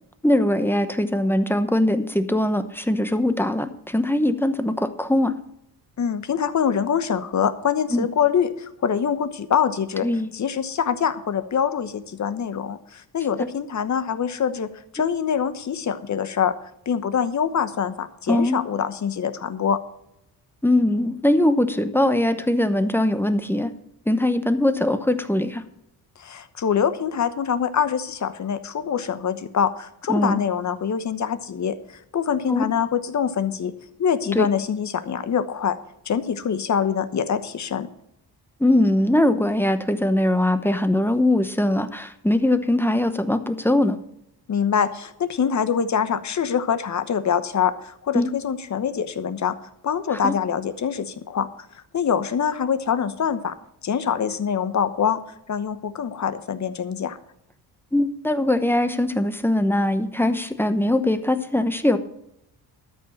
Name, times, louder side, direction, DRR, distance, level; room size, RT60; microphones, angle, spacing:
voice 1, 0.2-5.3 7.9-8.0 10.0-10.3 18.3-18.6 20.6-23.7 24.1-25.6 30.1-30.4 32.5-32.6 34.3-34.5 38.6-44.0 48.1-48.3 50.1-50.3 57.9-62.0, left 1 dB, 5° left, 9 dB, 0.9 m, -21 dB
voice 2, 6.0-10.1 10.3-14.7 14.9-16.5 16.9-19.8 26.2-33.7 34.0-35.8 36.1-37.9 44.5-49.5 49.8-51.5 51.9-53.5 53.8-55.2 55.5-57.2, left 7 dB, 45° left, 11 dB, 1.1 m, -24 dB
13.0 x 5.5 x 7.2 m, 0.78 s
cardioid pair, 105°, 41 cm